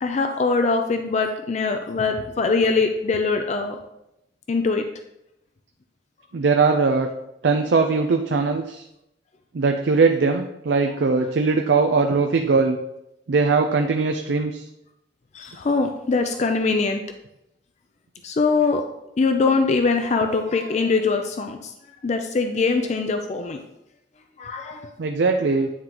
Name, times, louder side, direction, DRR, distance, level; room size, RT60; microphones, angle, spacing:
voice 1, 0.0-3.8 4.5-4.9 15.3-17.0 18.2-18.8 19.2-21.7 22.0-23.6 24.4-24.9, left 4 dB, 40° left, 5 dB, 0.4 m, -22 dB
voice 2, 6.3-7.1 7.4-8.8 9.5-12.8 13.3-14.7 25.0-25.7, right 4 dB, 65° right, 4 dB, 0.4 m, -20 dB
9.5 x 3.8 x 2.9 m, 0.84 s
head